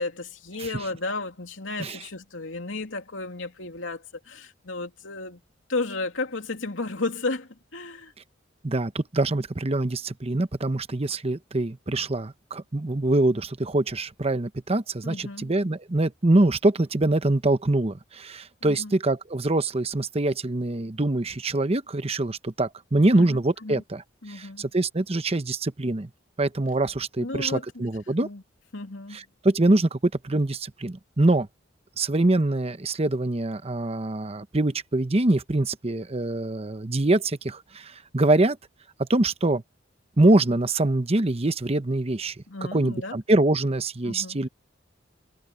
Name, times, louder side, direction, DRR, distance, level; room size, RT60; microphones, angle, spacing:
voice 1, 0.0-5.4 5.7-8.1 15.0-15.5 18.6-19.0 23.1-23.8 24.2-24.7 27.2-27.6 28.2-28.4 28.7-29.2 42.5-43.2 44.0-44.4, left 3 dB, 90° left, 2.9 m, -33 dB
voice 2, 8.6-24.0 24.3-26.1 26.4-28.3 29.1-31.5 32.0-38.6 39.0-39.6 40.2-42.3 42.7-44.5, right 2 dB, 30° right, 0.9 m, -24 dB
head